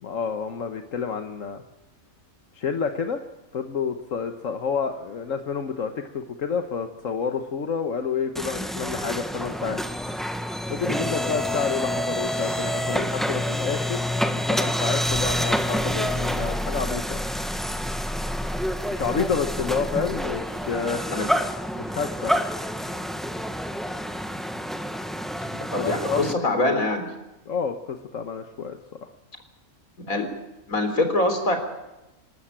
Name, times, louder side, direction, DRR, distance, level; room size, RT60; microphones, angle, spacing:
voice 1, 0.0-1.6 2.5-3.2 3.5-9.8 10.7-14.0 14.3-17.3 18.9-21.3 21.8-22.4 25.5-26.7 27.5-29.1, left 6 dB, 70° left, 6 dB, 1.5 m, -29 dB
sound 1, 8.3-26.3, equal, ahead, 1.1 m, -28 dB
voice 2, 25.7-27.1 30.0-30.3 30.7-31.6, left 2 dB, 85° left, 6 dB, 4.2 m, -24 dB
27.5 x 13.0 x 8.9 m, 1.0 s
omnidirectional pair, 1.4 m